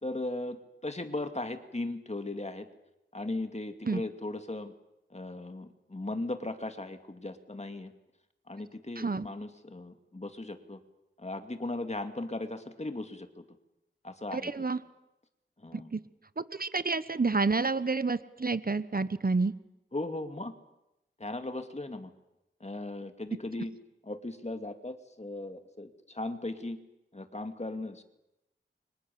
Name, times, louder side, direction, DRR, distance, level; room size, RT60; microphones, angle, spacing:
voice 1, 0.0-0.6 0.8-2.7 3.1-4.7 5.1-7.9 8.5-10.8 11.2-13.4 14.0-14.5 15.6-15.9 19.9-20.5 21.2-22.1 22.6-23.7 24.0-26.8 27.1-28.0, left 2 dB, 35° left, 7 dB, 2.4 m, -37 dB
voice 2, 9.0-9.3 14.3-14.8 15.7-16.0 16.4-19.5, right 4 dB, 45° right, 14 dB, 1.1 m, -29 dB
29.5 x 25.5 x 7.1 m, 0.91 s
wide cardioid pair, 55°, 21 cm